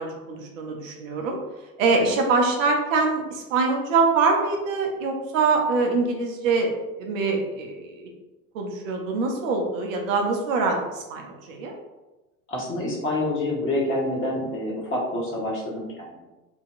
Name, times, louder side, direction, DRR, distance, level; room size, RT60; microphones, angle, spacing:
voice 1, 0.0-1.4 1.8-6.7 7.0-8.1 8.5-11.7, right 4 dB, 55° right, 1 dB, 0.6 m, -24 dB
voice 2, 12.5-16.3, left 1 dB, 25° left, -4 dB, 0.9 m, -27 dB
2.9 x 2.7 x 2.4 m, 1.1 s
figure-of-eight pair, 75°, 47 cm